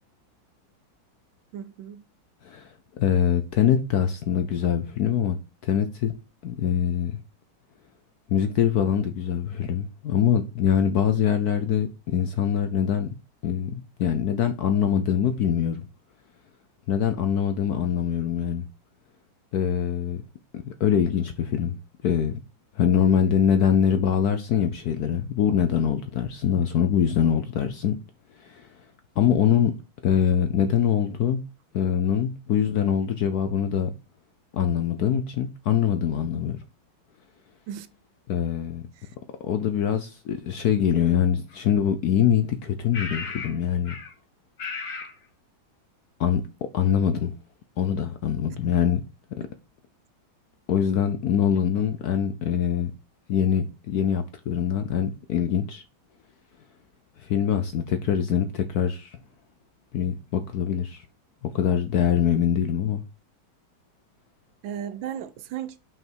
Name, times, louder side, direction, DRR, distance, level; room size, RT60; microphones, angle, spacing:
voice 1, 1.5-2.0 37.7-37.9 39.0-39.1 64.6-65.8, right 9 dB, 75° right, 1.3 m, -35 dB
voice 2, 2.4-6.2 6.4-7.2 8.3-13.1 13.4-15.8 16.9-18.6 19.5-20.2 20.5-21.8 22.0-22.4 22.8-28.0 28.4-28.7 29.2-29.7 30.0-31.4 31.7-33.9 34.5-36.6 38.3-38.9 39.4-43.9 46.2-46.4 46.7-47.3 47.8-49.0 49.4-49.5 50.7-52.9 53.3-55.8 57.2-59.2 59.9-61.0 61.4-63.0, left 9 dB, 70° left, 0.9 m, -24 dB
sound 1, 41.5-41.6 42.9-43.6 43.8-44.1 44.6-45.1, left 5 dB, 50° left, 1.9 m, -34 dB
5.7 x 5.6 x 4.5 m
omnidirectional pair, 2.2 m